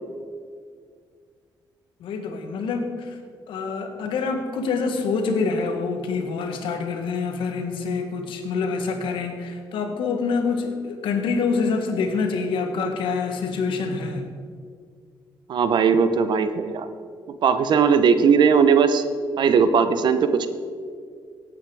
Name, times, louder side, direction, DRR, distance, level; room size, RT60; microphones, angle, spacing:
voice 1, 2.0-3.1 3.5-14.3, left 4 dB, 90° left, 5 dB, 1.6 m, -26 dB
voice 2, 15.5-16.9 17.4-19.0 19.4-20.5, right 6 dB, 65° right, 11 dB, 0.9 m, -18 dB
17.0 x 8.6 x 4.8 m, 2.1 s
cardioid pair, 115°, 8 cm